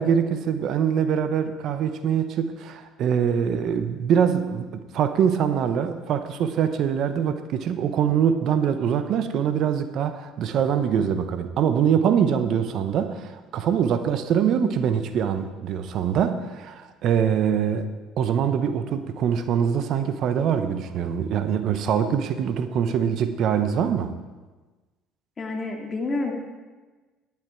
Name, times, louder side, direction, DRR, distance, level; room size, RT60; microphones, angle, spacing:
voice 1, 0.0-17.9 18.2-24.2, right 8 dB, 60° right, 10 dB, 0.8 m, -23 dB
voice 2, 25.4-26.3, left 3 dB, 35° left, 1 dB, 2.3 m, -28 dB
10.5 x 10.5 x 4.4 m, 1.3 s
supercardioid pair, 75°, 0 cm